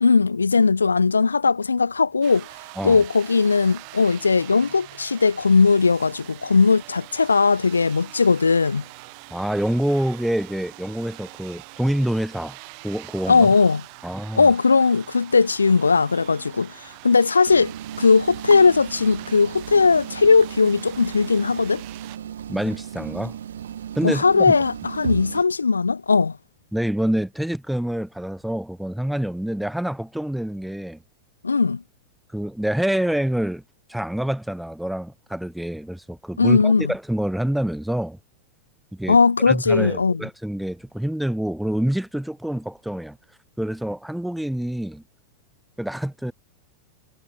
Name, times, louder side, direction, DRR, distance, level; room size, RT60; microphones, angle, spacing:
voice 1, 0.0-2.4 2.8-8.8 13.3-13.8 14.3-21.8 24.0-26.4 31.4-31.8 36.4-36.9 39.1-40.2, left 4 dB, 75° left, 1.2 m, -18 dB
sound 1, 2.2-22.2, right 40 dB or more, 45° right, 7.0 m, -44 dB
voice 2, 9.3-12.6 12.8-13.5 14.0-14.5 22.5-23.4 23.9-24.5 26.7-31.0 32.3-33.6 33.9-38.2 38.9-39.2 39.5-43.2 43.6-45.0 45.8-46.3, right 1 dB, ahead, 4.7 m, -26 dB
sound 2, 17.5-25.4, right 9 dB, 65° right, 2.7 m, -35 dB
figure-of-eight pair, 90°, 0 cm